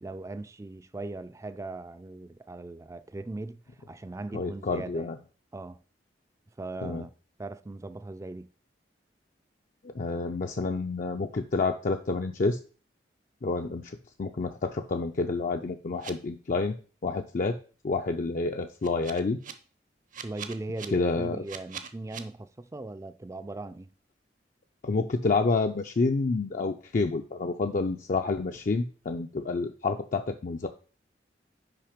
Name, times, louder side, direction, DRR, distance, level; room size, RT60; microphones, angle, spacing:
voice 1, 0.0-3.6 3.9-5.1 5.5-5.8 6.6-7.1 7.4-8.5 20.2-23.9, right 2 dB, 15° right, 0.4 m, -39 dB
voice 2, 4.3-5.2 6.8-7.0 9.8-12.6 13.4-16.8 17.0-17.6 17.8-19.4 20.9-21.4 24.8-30.7, left 3 dB, 45° left, 0.5 m, -29 dB
sound 1, 16.0-16.1 18.8-19.5 20.1-20.9 21.5-22.2, right 7 dB, 50° right, 0.7 m, -40 dB
5.8 x 5.2 x 5.0 m
head